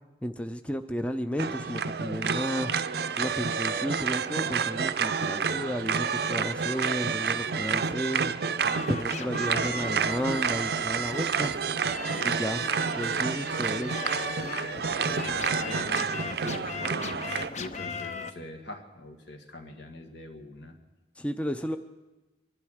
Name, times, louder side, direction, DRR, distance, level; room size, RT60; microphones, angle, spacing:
voice 1, 0.2-2.7 3.2-8.4 8.9-11.5 12.2-12.6 13.0-13.9 21.2-21.8, equal, 5° left, 8 dB, 0.5 m, -33 dB
sound 1, 1.4-17.5, right 6 dB, 65° right, 0.5 m, -29 dB
voice 2, 5.3-5.6 12.1-12.3 15.1-20.7, left 2 dB, 80° left, 3 dB, 1.9 m, -42 dB
sound 2, 8.6-18.3, left 4 dB, 40° left, 0.7 m, -39 dB
24.0 x 12.0 x 4.9 m, 1.1 s
head